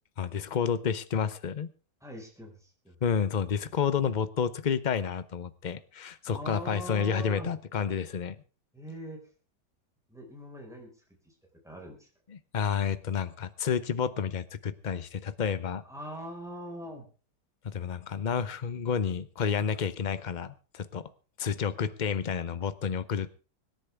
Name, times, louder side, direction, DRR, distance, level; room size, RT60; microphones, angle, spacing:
voice 1, 0.2-1.7 3.0-8.4 12.3-15.8 17.6-21.1 21.4-23.3, left 7 dB, 40° left, 15 dB, 0.7 m, -30 dB
voice 2, 2.0-3.0 6.3-7.5 8.7-9.2 10.1-10.9 11.2-11.3 11.6-12.1 15.8-17.1, equal, ahead, 0 dB, 5.0 m, -42 dB
25.5 x 10.5 x 3.5 m, 0.34 s
omnidirectional pair, 1.8 m